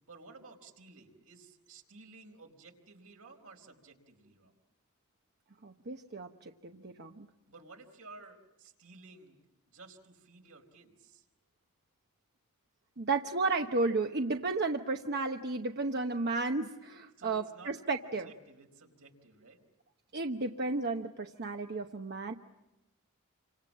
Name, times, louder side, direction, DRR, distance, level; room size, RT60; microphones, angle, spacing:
voice 1, 0.1-4.6 7.5-9.4 9.7-11.3 17.1-17.7 18.0-19.6, right 3 dB, 75° right, 3 dB, 4.5 m, -54 dB
voice 2, 5.6-7.3 13.0-18.3 20.1-22.3, right 3 dB, 50° right, 4 dB, 1.0 m, -33 dB
29.0 x 26.0 x 7.5 m, 0.97 s
head